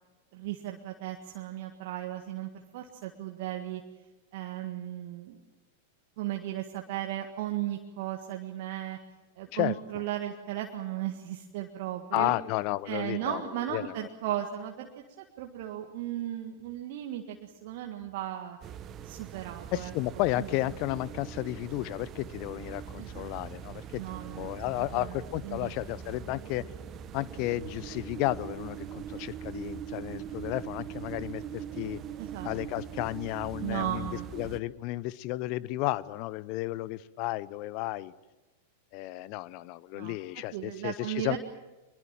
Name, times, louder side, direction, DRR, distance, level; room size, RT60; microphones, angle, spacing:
voice 1, 0.3-3.8 4.3-5.4 6.2-9.0 9.4-12.3 12.9-14.9 15.2-18.6 19.0-19.9 20.4-20.5 23.0-23.3 24.0-24.6 24.9-25.7 32.2-32.5 33.6-34.3 39.9-40.2 40.5-41.4, right 13 dB, 50° right, 3 dB, 1.8 m, -36 dB
voice 2, 12.1-13.4 13.7-13.9 19.7-26.6 27.1-32.0 32.4-38.1 38.9-41.4, left 17 dB, 45° left, 20 dB, 0.8 m, -33 dB
sound 1, 18.6-34.6, right 9 dB, 30° right, 1.2 m, -42 dB
24.5 x 22.0 x 7.4 m, 1.1 s
figure-of-eight pair, 95°, 0 cm